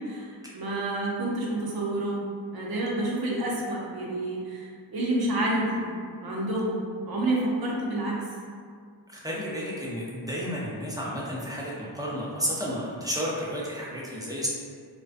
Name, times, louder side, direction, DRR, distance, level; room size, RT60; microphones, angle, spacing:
voice 1, 0.0-2.2 2.5-6.0 6.2-8.2, right 1 dB, 55° right, -4 dB, 0.6 m, -29 dB
voice 2, 9.1-14.5, equal, 10° right, -6 dB, 0.4 m, -32 dB
2.3 x 2.2 x 2.5 m, 2.1 s
wide cardioid pair, 95°, 43 cm